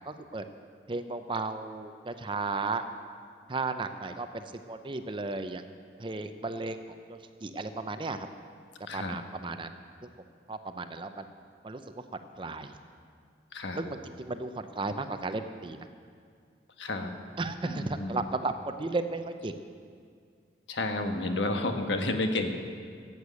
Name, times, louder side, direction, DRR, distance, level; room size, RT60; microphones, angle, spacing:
voice 1, 0.1-0.4 0.9-2.8 3.5-5.6 6.0-8.3 8.9-9.7 10.0-10.1 10.5-11.2 11.6-11.8 12.1-12.7 13.8-15.8 17.4-19.5, right 3 dB, 25° right, 9 dB, 0.6 m, -34 dB
voice 2, 13.5-13.8 16.8-17.1 17.6-18.3 20.7-22.5, left 2 dB, 75° left, 5 dB, 1.3 m, -31 dB
13.0 x 8.1 x 8.3 m, 2.1 s
head